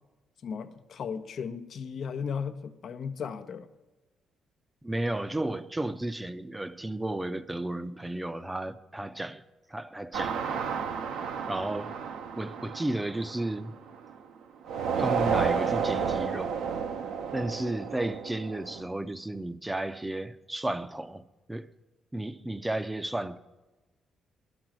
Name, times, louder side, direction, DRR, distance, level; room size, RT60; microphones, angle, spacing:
voice 1, 0.4-3.7, left 6 dB, 60° left, 0.8 m, -36 dB
voice 2, 4.8-9.4 9.7-10.6 11.5-12.0 12.4-13.7 14.9-16.6 17.3-21.2 21.5-21.7 22.1-23.4, right 1 dB, 10° right, 0.6 m, -33 dB
sound 1, 10.1-14.1 14.7-18.8, right 6 dB, 80° right, 0.9 m, -31 dB
12.0 x 6.2 x 8.8 m
cardioid pair, 90°, 0 cm